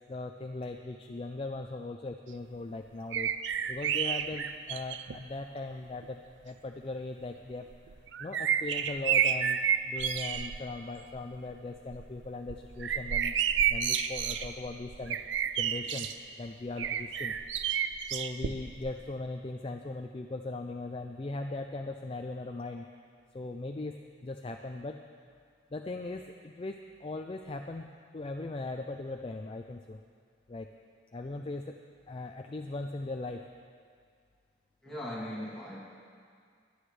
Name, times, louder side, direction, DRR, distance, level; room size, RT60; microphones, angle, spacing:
voice 1, 0.1-9.6 9.8-13.3 13.7-15.3 15.5-16.1 16.4-17.3 18.1-22.9 23.3-25.0 25.7-30.0 30.5-30.7 31.1-31.7 32.1-33.5, left 2 dB, 30° left, 4 dB, 0.4 m, -39 dB
sound 1, 3.1-5.2 6.0-6.1 7.7-10.6 11.0-11.4 11.8-16.1 16.8-18.9 19.2-19.3, right 8 dB, 70° right, 0.5 m, -30 dB
voice 2, 34.8-35.8, equal, 5° left, -8 dB, 2.6 m, -38 dB
22.5 x 9.6 x 3.3 m, 2.2 s
head